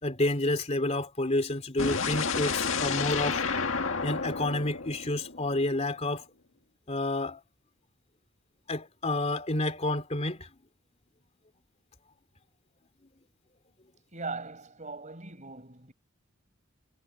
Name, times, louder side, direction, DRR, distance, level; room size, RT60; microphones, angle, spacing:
voice 1, 0.0-3.4 4.0-6.3 6.9-7.4 8.7-10.5, left 2 dB, 35° left, 3.0 m, -29 dB
sound 1, 1.8-5.8, left 5 dB, 75° left, 1.9 m, -31 dB
voice 2, 14.1-15.9, right 3 dB, 35° right, 4.9 m, -39 dB
head